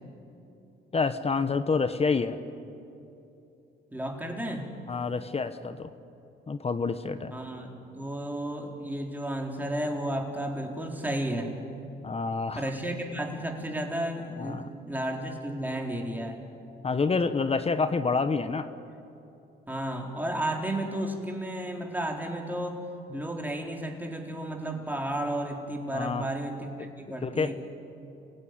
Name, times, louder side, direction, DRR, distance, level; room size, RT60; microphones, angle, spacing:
voice 1, 0.9-2.4 4.9-5.9 6.5-7.3 12.0-12.6 14.4-14.7 16.8-18.7 23.1-23.2 25.9-26.3 26.8-26.9 27.2-27.6, left 4 dB, 30° left, 11 dB, 1.1 m, -28 dB
voice 2, 3.9-4.7 7.3-11.5 12.6-16.4 19.7-22.8 23.1-27.6, right 1 dB, 10° right, 1 dB, 4.2 m, -33 dB
29.0 x 17.0 x 9.7 m, 2.8 s
cardioid pair, 90°, 20 cm